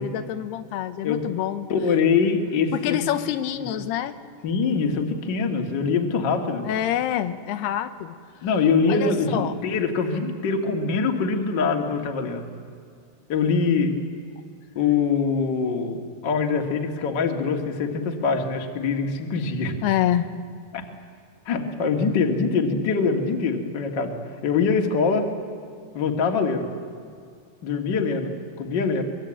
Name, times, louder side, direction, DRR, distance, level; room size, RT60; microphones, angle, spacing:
voice 1, 0.0-1.7 2.7-4.2 6.6-8.2 8.9-9.6 19.8-20.2, left 11 dB, 85° left, 10 dB, 2.9 m, -26 dB
voice 2, 1.7-3.0 3.6-3.8 4.4-6.7 8.4-12.5 13.3-14.0 14.8-19.8 20.7-20.9 21.5-25.3 25.9-26.7 27.6-29.0, left 5 dB, 40° left, 3 dB, 1.7 m, -23 dB
24.0 x 22.0 x 8.9 m, 2.3 s
omnidirectional pair, 4.6 m